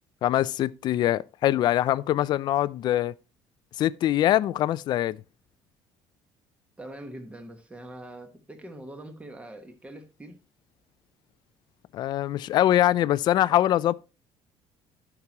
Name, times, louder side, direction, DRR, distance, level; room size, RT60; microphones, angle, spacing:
voice 1, 0.2-3.1 3.8-5.2 11.9-13.9, left 13 dB, 50° left, 0.4 m, -23 dB
voice 2, 6.8-10.4, right 1 dB, 15° right, 1.3 m, -43 dB
13.5 x 6.0 x 2.9 m
cardioid pair, 145°, 10 cm